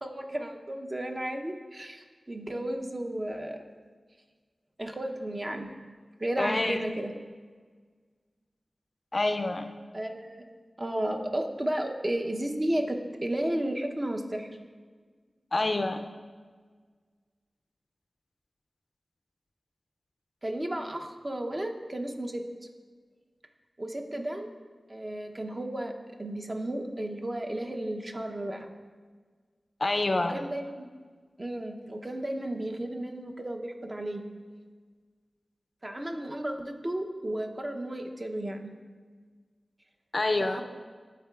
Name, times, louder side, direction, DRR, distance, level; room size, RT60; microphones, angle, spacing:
voice 1, 0.0-3.6 4.8-5.7 6.2-7.1 9.9-10.4 10.8-14.5 20.4-22.4 23.8-24.5 24.9-25.9 26.2-28.7 30.3-30.9 31.4-34.2 35.8-38.7 40.4-40.6, right 1 dB, 35° right, 3 dB, 0.7 m, -33 dB
voice 2, 6.4-6.8 9.1-9.7 15.5-16.1 29.8-30.4 40.1-40.6, left 2 dB, 50° left, 7 dB, 0.3 m, -27 dB
11.0 x 3.7 x 2.3 m, 1.5 s
cardioid pair, 40°, 0 cm